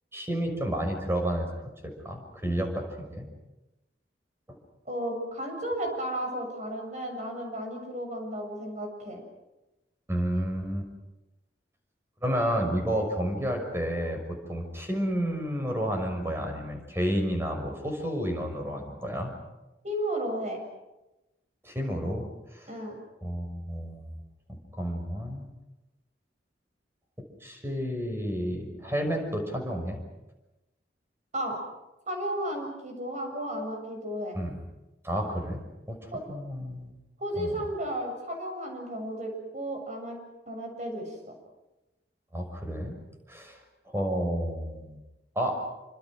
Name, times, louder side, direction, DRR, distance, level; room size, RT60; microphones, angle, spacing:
voice 1, 0.1-1.5 2.0-3.3 10.1-10.9 12.2-14.2 14.5-19.3 21.6-22.3 22.5-22.8 23.2-24.2 24.7-25.5 27.4-30.0 34.3-34.6 35.0-36.9 37.4-37.6 42.3-42.9 43.3-43.6 43.9-45.0 45.3-45.6, equal, 15° right, 4 dB, 6.1 m, -31 dB
voice 2, 4.9-9.2 19.8-20.6 22.7-23.0 31.3-31.6 32.1-34.4 36.1-36.2 37.2-40.2 40.5-41.3, right 1 dB, 45° right, 3 dB, 7.3 m, -33 dB
28.0 x 26.0 x 6.3 m, 1.0 s
head